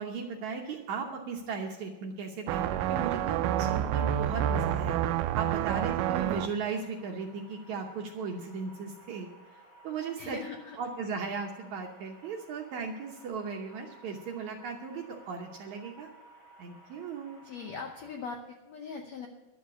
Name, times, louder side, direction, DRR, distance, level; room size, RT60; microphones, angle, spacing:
voice 1, 0.0-9.3 9.8-10.4 10.8-16.1 16.6-17.4, right 5 dB, 70° right, 2 dB, 1.9 m, -37 dB
sound 1, 2.5-6.5, right 11 dB, 90° right, 1.8 m, -28 dB
sound 2, 3.1-18.1, right 1 dB, 40° left, 2.1 m, -56 dB
voice 2, 10.1-10.8 17.4-19.3, left 5 dB, 75° left, 3 dB, 1.6 m, -41 dB
12.0 x 7.3 x 8.2 m, 1.1 s
omnidirectional pair, 4.3 m